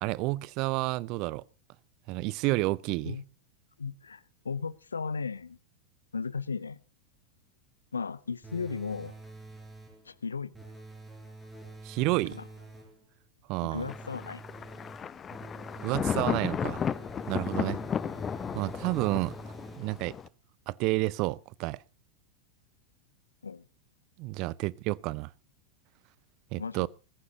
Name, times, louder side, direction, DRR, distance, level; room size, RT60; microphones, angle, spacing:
voice 1, 0.0-1.4 2.1-3.2 11.8-12.4 13.5-13.9 15.8-16.8 17.3-17.8 18.5-19.3 19.8-20.1 20.7-21.8 24.2-25.3 26.5-26.9, right 20 dB, 40° right, 0.6 m, -30 dB
voice 2, 3.8-5.6 6.1-6.8 7.9-9.1 10.1-10.6 12.3-12.4 13.6-14.4 17.7-17.8 23.4-23.6 26.5-26.9, left 5 dB, 75° left, 0.8 m, -36 dB
sound 1, 8.4-10.1 10.5-13.0 13.7-20.1, right 2 dB, 5° right, 6.2 m, -47 dB
Thunder, 13.9-20.3, left 7 dB, 20° left, 0.7 m, -34 dB
20.5 x 15.0 x 2.9 m
figure-of-eight pair, 90°, 0 cm